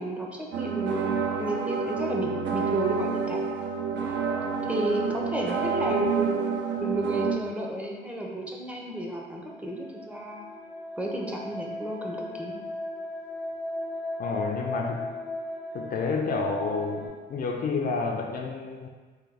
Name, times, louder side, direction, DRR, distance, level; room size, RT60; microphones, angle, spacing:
voice 1, 0.0-3.4 4.6-6.4 6.8-10.5 11.0-12.6, right 1 dB, 5° right, -1 dB, 0.5 m, -32 dB
sound 1, 0.5-7.3, right 5 dB, 65° right, 0.4 m, -28 dB
sound 2, 8.7-17.1, left 1 dB, 90° right, 1.5 m, -37 dB
voice 2, 14.2-15.2 15.7-18.9, left 4 dB, 50° left, 2 dB, 0.4 m, -30 dB
3.5 x 2.2 x 3.3 m, 1.4 s
cardioid pair, 90°, 20 cm